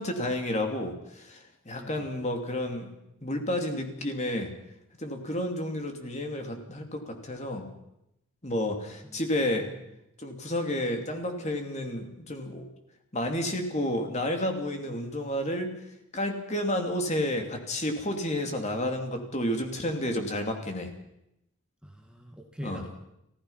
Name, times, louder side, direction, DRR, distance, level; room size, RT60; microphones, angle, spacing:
voice 1, 0.0-2.9 3.2-4.5 5.0-7.7 8.4-9.7 10.2-12.6 13.1-15.7 16.1-20.9 22.6-22.8, left 1 dB, 30° left, 4 dB, 2.9 m, -31 dB
voice 2, 1.7-2.1 9.0-9.2 9.7-9.8 21.8-22.9, equal, 5° right, 2 dB, 1.7 m, -43 dB
29.5 x 15.5 x 5.8 m, 0.85 s
head